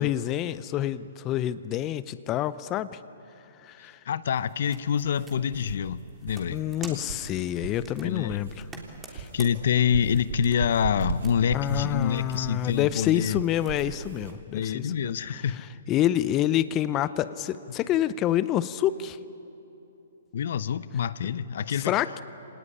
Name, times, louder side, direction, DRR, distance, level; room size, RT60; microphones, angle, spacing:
voice 1, 0.0-2.9 3.6-4.0 6.5-8.5 9.1-9.3 11.5-15.1 15.5-19.2 21.8-22.2, left 12 dB, 25° left, 15 dB, 0.6 m, -27 dB
voice 2, 4.1-6.6 8.0-8.4 9.3-13.4 14.5-15.6 20.3-21.9, left 8 dB, 65° left, 16 dB, 0.7 m, -26 dB
sound 1, 4.3-13.9, right 3 dB, 15° right, 3.3 m, -49 dB
sound 2, 4.8-14.3, right 5 dB, 70° right, 3.2 m, -38 dB
25.5 x 18.5 x 9.9 m, 3.0 s
hypercardioid pair, 135°, 0 cm